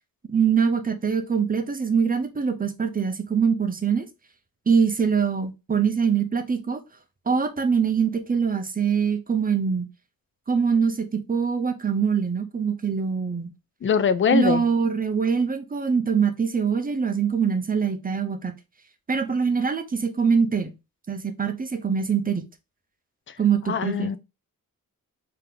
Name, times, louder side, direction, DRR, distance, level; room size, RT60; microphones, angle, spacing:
voice 1, 0.3-4.1 4.7-6.8 7.3-9.9 10.5-13.5 14.3-18.5 19.1-20.7 21.1-22.4 23.4-24.1, right 6 dB, 25° right, 0.6 m, -23 dB
voice 2, 13.8-14.6 23.7-24.2, left 7 dB, 40° left, 0.4 m, -22 dB
3.7 x 2.8 x 3.7 m
wide cardioid pair, 155°, 34 cm